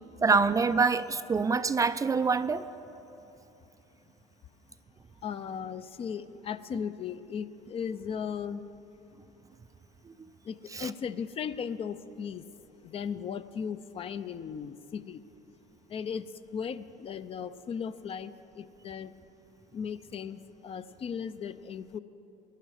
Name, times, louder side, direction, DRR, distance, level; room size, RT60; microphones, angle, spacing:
voice 1, 0.2-2.7 10.7-10.9, right 4 dB, 20° right, 12 dB, 0.4 m, -25 dB
voice 2, 5.2-8.6 10.5-12.4 12.8-15.2 15.9-16.2 16.5-19.1 19.7-22.0, left 7 dB, 35° left, 13 dB, 0.5 m, -37 dB
18.0 x 11.0 x 4.9 m, 2.9 s
supercardioid pair, 95°, 16 cm